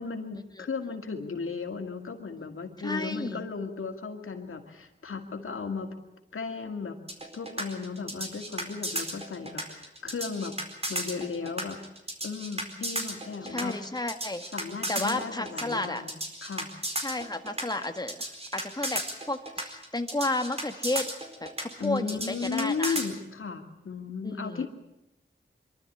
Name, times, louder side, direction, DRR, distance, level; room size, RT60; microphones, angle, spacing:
voice 1, 0.0-5.9 6.3-7.0 7.3-10.6 10.9-11.8 12.2-13.7 14.5-16.7 21.8-24.7, left 5 dB, 85° left, 4 dB, 2.3 m, -35 dB
voice 2, 2.8-3.5 13.5-14.4 14.9-16.0 17.0-21.1 21.4-23.0 24.2-24.7, left 2 dB, 20° left, 6 dB, 1.7 m, -32 dB
sound 1, 7.1-23.1, right 1 dB, 30° right, 4.5 m, -34 dB
24.5 x 12.5 x 9.9 m, 0.90 s
cardioid pair, 50°, 21 cm